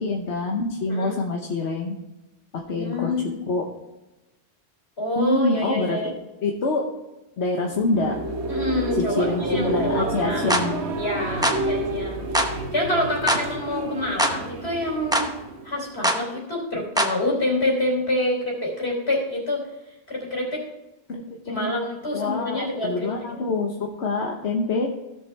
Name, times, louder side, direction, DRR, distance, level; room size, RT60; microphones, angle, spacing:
voice 1, 0.0-1.9 2.7-3.1 3.5-3.6 5.2-6.8 7.4-8.1 9.1-10.8 21.1-21.7 22.1-24.9, left 3 dB, 90° left, 0 dB, 1.4 m, -26 dB
voice 2, 0.9-1.2 2.7-3.3 5.0-6.1 8.5-10.5 10.9-12.2 12.7-15.3 15.6-19.6 20.1-20.6 21.5-23.1, left 1 dB, 70° left, -2 dB, 3.7 m, -27 dB
sound 1, 7.6-16.2, right 2 dB, 80° right, 1.3 m, -30 dB
sound 2, 10.5-10.7 11.4-11.6 12.3-12.5 13.3-13.5 14.2-14.4 15.1-15.3 16.0-16.2 17.0-17.2, equal, 5° right, 0.8 m, -21 dB
16.0 x 6.9 x 3.4 m, 1.0 s
omnidirectional pair, 1.1 m